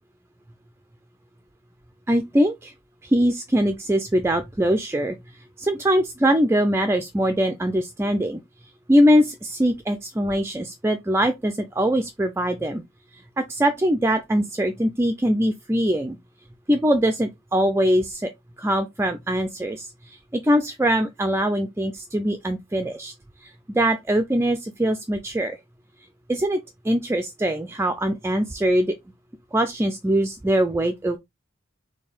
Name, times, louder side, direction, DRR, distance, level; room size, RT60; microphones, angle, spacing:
voice 1, 2.1-2.7 3.0-5.2 5.6-8.4 8.9-12.8 13.1-16.2 16.7-18.3 18.6-23.1 23.4-25.6 26.3-28.9 29.5-31.2, equal, 10° right, 0.4 m, -22 dB
4.4 x 3.2 x 3.4 m
head